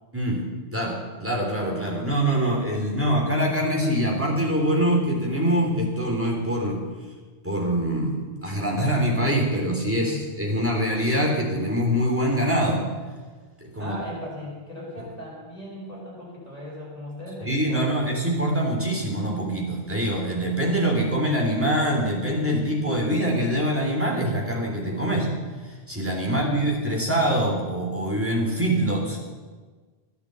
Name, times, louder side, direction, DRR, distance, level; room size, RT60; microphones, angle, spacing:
voice 1, 0.1-0.4 0.7-6.8 7.4-12.8 13.6-14.0 17.4-25.3 25.9-29.2, right 1 dB, 10° right, -1 dB, 3.3 m, -24 dB
voice 2, 9.9-10.3 13.8-18.1 26.2-26.7, left 1 dB, 40° left, -5 dB, 5.7 m, -38 dB
15.5 x 10.0 x 8.2 m, 1.4 s
omnidirectional pair, 1.0 m